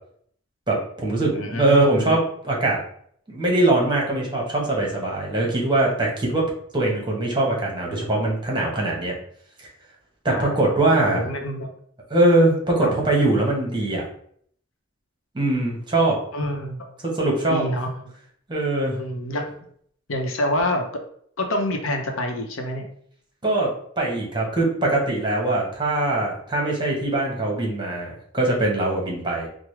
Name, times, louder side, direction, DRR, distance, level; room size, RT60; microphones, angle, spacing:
voice 1, 0.7-2.8 3.3-6.4 6.7-9.2 10.2-11.2 12.1-14.1 15.3-16.2 17.0-17.6 18.5-19.0 23.4-29.5, right 2 dB, 25° right, -2 dB, 1.0 m, -22 dB
voice 2, 1.2-2.2 10.3-11.7 12.8-12.9 16.3-16.9 17.5-17.9 19.0-19.5 20.1-20.8 21.4-22.9, left 1 dB, 90° left, 3 dB, 0.7 m, -27 dB
4.8 x 2.1 x 3.1 m, 0.62 s
head